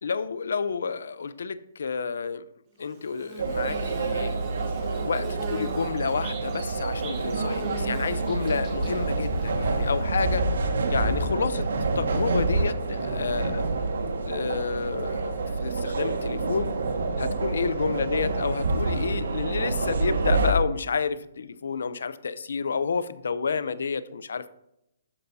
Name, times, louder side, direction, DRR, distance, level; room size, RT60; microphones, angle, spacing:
voice 1, 0.0-2.5 2.8-4.3 4.8-10.4 10.9-11.7 12.0-13.7 14.2-16.7 17.2-24.5, left 5 dB, 75° left, 15 dB, 0.7 m, -30 dB
Bird / Buzz, 2.8-10.5, right 2 dB, 20° right, 1.4 m, -42 dB
sound 1, 3.4-20.5, right 3 dB, 85° right, 1.7 m, -27 dB
12.5 x 8.7 x 2.8 m, 0.84 s
hypercardioid pair, 180°, 0 cm